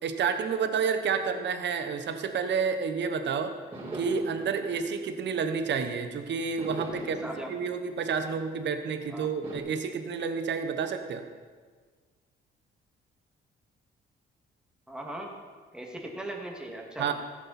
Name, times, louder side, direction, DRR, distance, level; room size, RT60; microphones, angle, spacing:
voice 1, 0.0-3.5 3.9-7.2 7.5-11.2 17.0-17.1, right 6 dB, 65° right, 8 dB, 1.2 m, -30 dB
sound 1, 3.7-6.0 6.6-8.8 9.4-9.6, right 1 dB, 25° right, 4.8 m, -43 dB
voice 2, 7.0-7.5 9.1-9.3 14.9-15.3 15.7-17.1, right 1 dB, 5° right, -1 dB, 2.4 m, -39 dB
14.5 x 11.0 x 4.3 m, 1.5 s
cardioid pair, 90°, 20 cm